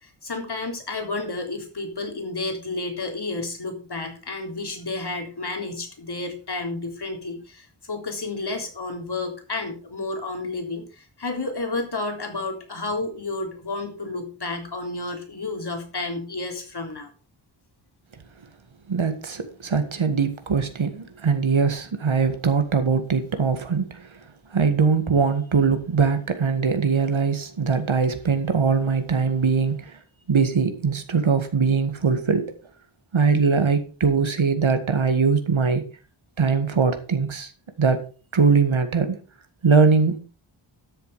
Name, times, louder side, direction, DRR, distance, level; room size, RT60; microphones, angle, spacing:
voice 1, 0.0-17.1, left 3 dB, 50° left, 3 dB, 3.7 m, -31 dB
voice 2, 18.9-24.1 24.5-30.0 30.3-32.4 33.1-35.8 36.4-37.5 37.8-38.0 38.3-39.2 39.6-40.2, right 5 dB, 75° right, 7 dB, 2.0 m, -21 dB
12.5 x 7.2 x 5.0 m, 0.36 s
wide cardioid pair, 70°, 48 cm